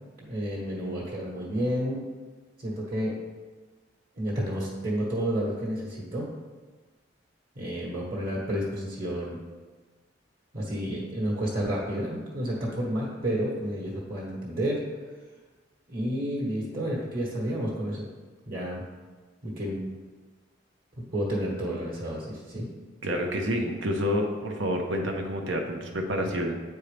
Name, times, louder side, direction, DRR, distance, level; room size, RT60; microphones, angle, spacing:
voice 1, 0.3-2.0 2.6-3.2 4.2-6.3 7.5-9.4 10.5-14.8 15.9-18.1 18.5-18.8 19.4-19.8 21.0-22.7, equal, 50° right, -6 dB, 1.4 m, -30 dB
voice 2, 23.0-26.5, equal, 85° right, 2 dB, 1.0 m, -28 dB
8.4 x 4.5 x 3.4 m, 1.4 s
head